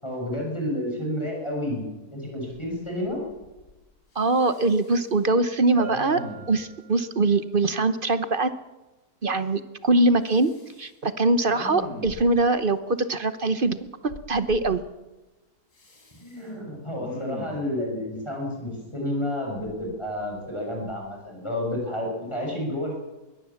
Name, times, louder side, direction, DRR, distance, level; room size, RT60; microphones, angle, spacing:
voice 1, 0.0-1.8 2.1-3.2 16.1-23.0, left 1 dB, 15° left, -1 dB, 6.5 m, -30 dB
Respiratory sounds, 2.8-2.9 3.0-3.8 4.1-5.2 5.8-6.7 10.3-10.9 11.4-12.5 14.1-14.7 15.7-16.4 16.9-17.7 19.5-20.5 20.9-21.1, left 1 dB, 70° left, 4.7 m, -41 dB
voice 2, 4.1-6.2 6.5-8.5 9.2-10.5 10.8-14.8, right 2 dB, 40° right, 12 dB, 0.9 m, -23 dB
Bell, 5.8-7.4, equal, 85° right, 8.9 m, -40 dB
22.5 x 18.0 x 7.2 m, 1.1 s
omnidirectional pair, 1.8 m